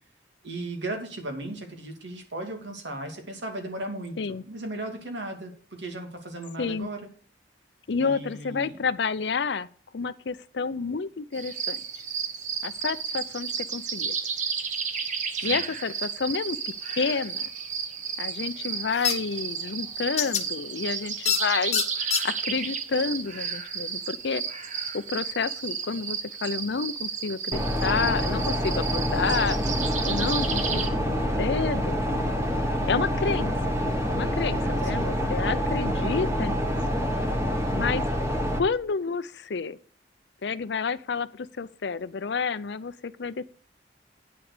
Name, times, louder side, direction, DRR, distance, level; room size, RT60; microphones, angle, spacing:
voice 1, 0.4-7.1 8.0-8.8 15.4-15.7 34.9-35.2, right 1 dB, 80° right, 2.4 m, -36 dB
voice 2, 6.6-6.9 7.9-9.7 9.9-11.8 12.6-14.1 15.4-17.5 18.2-21.8 22.2-24.4 24.9-29.6 30.0-32.0 32.9-33.8 34.1-36.7 37.7-38.0 38.6-39.8 40.4-43.5, left 5 dB, 70° left, 0.6 m, -30 dB
sound 1, 11.3-30.9, right 6 dB, 45° right, 1.0 m, -32 dB
sound 2, 19.0-19.1 20.2-20.4 21.3-21.4 21.7-22.2, left 8 dB, 40° left, 1.1 m, -24 dB
sound 3, 27.5-38.6, equal, 15° right, 1.4 m, -27 dB
9.2 x 6.1 x 6.6 m
head